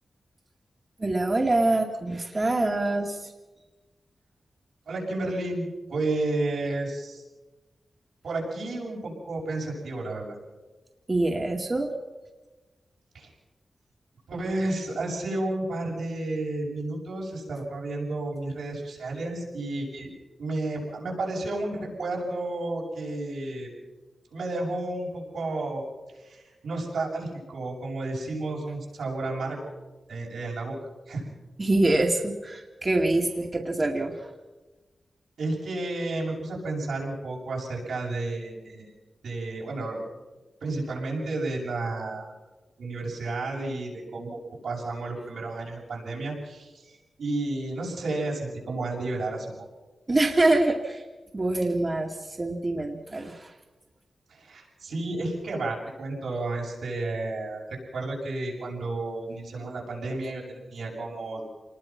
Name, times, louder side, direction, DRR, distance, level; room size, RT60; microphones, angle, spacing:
voice 1, 1.0-3.2 11.1-11.9 31.6-34.1 50.1-51.0 51.3-53.5, right 2 dB, 30° right, 1 dB, 2.2 m, -25 dB
voice 2, 4.9-7.2 8.2-10.4 13.1-13.3 14.3-20.1 20.4-23.7 24.3-25.8 26.2-29.6 30.1-30.7 31.1-31.2 35.4-38.9 39.2-40.0 40.6-42.2 42.8-49.5 54.3-61.4, right 2 dB, 90° right, -3 dB, 7.2 m, -32 dB
27.5 x 20.0 x 6.0 m, 1.2 s
cardioid pair, 80°, 0 cm